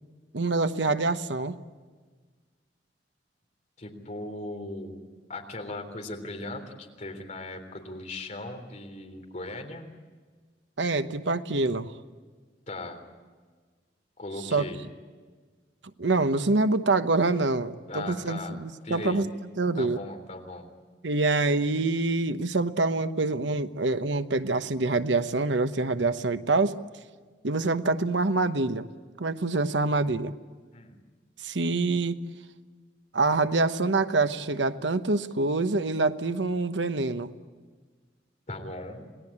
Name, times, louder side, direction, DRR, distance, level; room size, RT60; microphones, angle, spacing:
voice 1, 0.3-1.6 10.8-11.9 14.5-14.6 16.0-19.3 19.6-20.0 21.0-26.8 27.4-28.9 29.2-30.3 31.4-32.2 33.1-37.3, right 3 dB, 90° right, 10 dB, 1.0 m, -26 dB
voice 2, 3.8-5.0 5.3-9.9 12.7-13.1 14.2-14.8 17.9-18.5 18.8-19.2 19.8-20.7 30.7-31.0 38.5-39.1, left 2 dB, 40° left, 4 dB, 3.6 m, -38 dB
28.0 x 19.5 x 8.7 m, 1.5 s
head